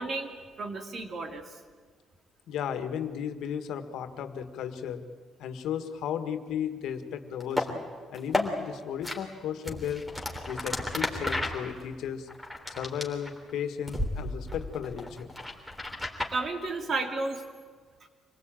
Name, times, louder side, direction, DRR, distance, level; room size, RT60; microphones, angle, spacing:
voice 1, 0.0-1.4 16.3-17.4, right 3 dB, 50° right, 5 dB, 2.9 m, -32 dB
voice 2, 2.5-5.0 5.4-7.8 8.1-10.0 10.5-12.3 12.7-15.3, left 8 dB, 80° left, 8 dB, 1.7 m, -34 dB
sound 1, 7.4-7.7 8.1-8.5 9.0-9.2 9.6-13.5 13.9-14.1 14.5-16.3, left 1 dB, ahead, 3.6 m, -32 dB
26.0 x 18.5 x 9.0 m, 1.5 s
cardioid pair, 90°, 0 cm